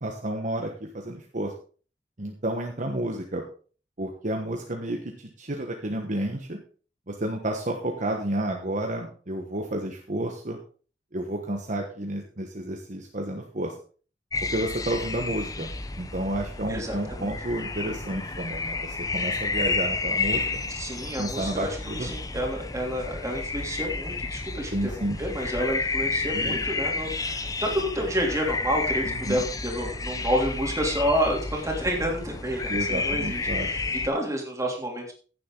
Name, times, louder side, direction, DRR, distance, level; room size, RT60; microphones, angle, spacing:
voice 1, 0.0-1.5 2.2-3.4 4.0-6.6 7.1-10.6 11.1-13.7 14.4-15.7 16.0-20.4 21.2-22.1 24.7-25.2 26.3-26.6 29.0-29.4 32.7-33.7, right 1 dB, 45° right, 2 dB, 1.3 m, -31 dB
sound 1, 14.3-34.1, left 3 dB, 20° left, 0.8 m, -31 dB
voice 2, 16.7-17.3 20.8-35.1, equal, 20° right, 0 dB, 3.1 m, -29 dB
15.5 x 7.6 x 3.9 m, 0.40 s
head